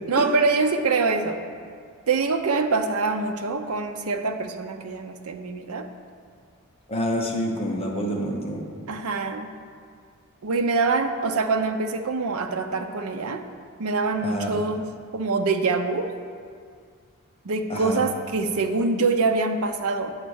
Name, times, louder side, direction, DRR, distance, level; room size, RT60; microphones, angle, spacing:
voice 1, 0.1-1.4 2.1-5.9 8.9-9.5 10.4-13.4 13.8-14.8 15.1-16.1 17.4-20.1, right 4 dB, 70° right, 6 dB, 0.6 m, -24 dB
voice 2, 6.9-8.7 14.2-14.6 17.7-18.0, equal, 25° left, -1 dB, 1.0 m, -27 dB
8.8 x 4.2 x 6.3 m, 2.1 s
head